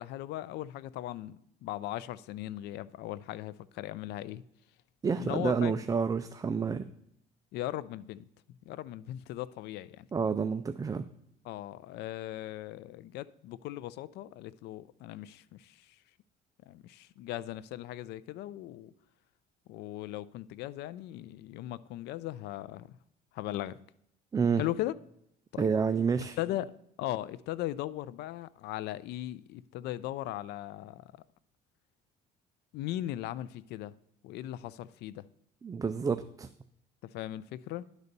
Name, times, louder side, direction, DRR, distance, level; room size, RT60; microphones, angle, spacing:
voice 1, 0.0-4.4 5.2-5.7 7.5-8.2 8.7-10.1 11.4-16.0 16.7-18.9 19.7-23.0 23.3-23.8 24.6-24.9 25.5-25.7 26.4-26.7 27.0-31.1 32.7-33.9 34.2-35.2 37.0-37.8, left 14 dB, 80° left, 0.4 m, -38 dB
voice 2, 5.0-6.9 10.1-11.1 24.3-24.6 25.6-26.4 35.6-36.5, right 5 dB, 20° right, 0.4 m, -29 dB
11.0 x 4.1 x 6.6 m
cardioid pair, 110°, 17 cm